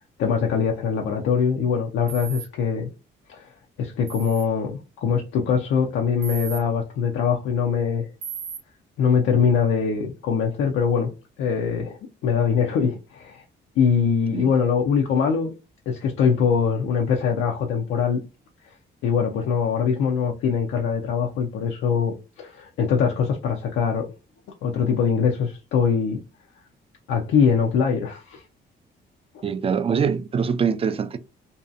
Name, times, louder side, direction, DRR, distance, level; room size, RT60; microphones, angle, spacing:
voice 1, 0.2-2.9 3.3-3.5 3.8-8.1 9.0-11.1 11.4-13.4 13.8-15.5 15.9-18.2 19.0-24.1 24.6-26.2 27.1-28.4, left 6 dB, 85° left, 0.5 m, -22 dB
sound 1, 2.1-2.5 4.1-4.4 6.2-6.6 8.2-8.6, right 8 dB, 90° right, 0.8 m, -35 dB
voice 2, 29.4-31.2, right 6 dB, 30° right, 0.3 m, -23 dB
2.6 x 2.3 x 2.5 m
cardioid pair, 90°, 20 cm